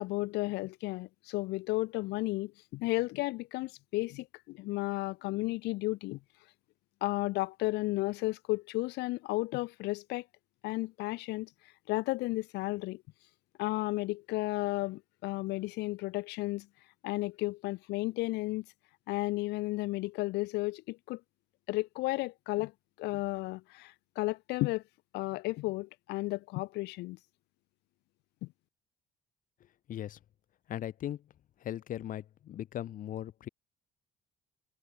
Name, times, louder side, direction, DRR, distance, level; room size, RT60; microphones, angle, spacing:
voice 1, 0.0-6.2 7.0-10.2 10.6-11.5 11.9-13.0 13.6-16.7 17.0-18.6 19.1-21.2 21.7-22.7 23.0-24.8 25.1-27.2 28.4-28.5, left 21 dB, 85° left, 0.5 m, -33 dB
voice 2, 29.9-30.2 30.7-31.2 31.6-33.5, left 11 dB, 55° left, 0.8 m, -38 dB
cardioid pair, 110°, 17 cm